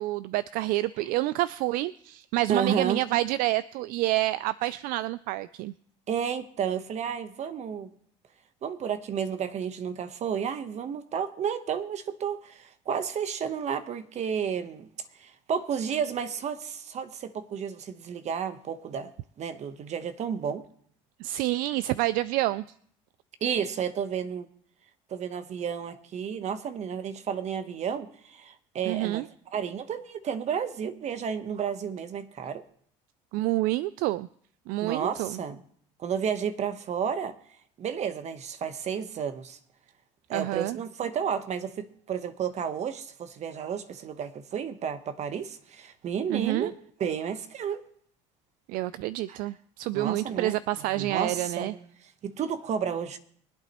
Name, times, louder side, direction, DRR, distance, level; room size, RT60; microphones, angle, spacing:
voice 1, 0.0-5.7 21.2-22.6 28.9-29.2 33.3-34.3 34.7-35.4 40.3-40.8 46.3-46.7 48.7-51.7, right 16 dB, 70° right, 0.4 m, -28 dB
voice 2, 2.5-3.0 6.1-7.9 8.6-14.9 15.2-19.1 19.4-20.6 23.4-24.5 25.1-29.2 29.5-32.6 34.8-35.6 36.0-37.4 37.8-39.6 40.3-47.8 49.3-49.4 49.9-50.6 50.9-53.2, right 7 dB, 50° right, 1.0 m, -32 dB
23.5 x 8.6 x 3.0 m
supercardioid pair, 80°, 15 cm